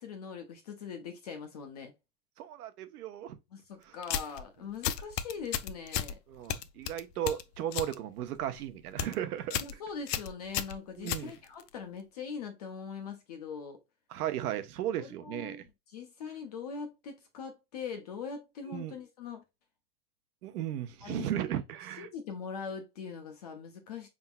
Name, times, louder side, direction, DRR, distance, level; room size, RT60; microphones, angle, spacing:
voice 1, 0.0-1.9 3.5-6.2 9.6-13.8 15.0-19.4 21.0-21.3 22.0-24.1, left 6 dB, 25° left, 0.4 m, -42 dB
voice 2, 2.4-3.4 3.9-4.0 6.3-9.6 11.0-11.3 14.1-15.6 18.7-18.9 20.4-22.1, right 11 dB, 70° right, 1.0 m, -35 dB
sound 1, 4.0-4.4 4.8-6.1 6.5-7.9 8.3-8.6 8.9-9.2 9.5-9.7 10.1-11.7, left 10 dB, 85° left, 0.8 m, -34 dB
5.6 x 3.6 x 2.2 m
supercardioid pair, 170°, 48 cm